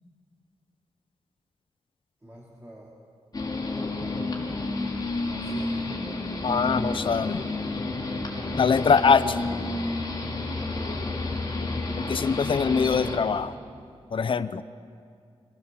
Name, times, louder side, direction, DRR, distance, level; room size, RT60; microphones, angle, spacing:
voice 1, 2.2-2.9 3.6-3.9 5.2-5.9 10.6-11.1, equal, 20° right, -4 dB, 3.6 m, -46 dB
sound 1, 3.3-13.2, left 2 dB, 35° left, 4.2 m, -30 dB
voice 2, 6.4-7.5 8.5-9.4 12.0-13.5 14.1-14.6, left 5 dB, 55° left, 12 dB, 0.7 m, -23 dB
26.0 x 18.0 x 7.3 m, 2.3 s
cardioid pair, 70°, 11 cm